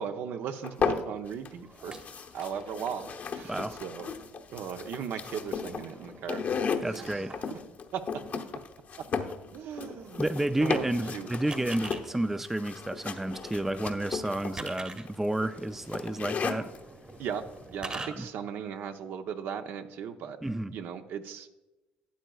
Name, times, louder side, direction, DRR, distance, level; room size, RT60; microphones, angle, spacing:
voice 1, 0.0-1.9 2.3-4.1 4.5-6.4 6.8-7.6 7.9-8.2 9.5-10.2 10.6-11.3 17.2-17.4 17.7-20.4 20.7-21.5, right 7 dB, 65° right, 0.7 m, -37 dB
sound 1, 0.6-1.5 1.8-16.8, left 6 dB, 50° left, 0.9 m, -35 dB
sound 2, 1.5-2.7 3.3-3.5 4.5-7.6 9.3-9.4 9.7-12.0 12.8-18.1, right 3 dB, 25° right, 1.2 m, -46 dB
voice 2, 6.8-7.4 10.2-16.7 18.0-18.3 20.4-20.7, right 1 dB, 10° right, 0.4 m, -31 dB
12.5 x 8.8 x 2.4 m
supercardioid pair, 75°, 4 cm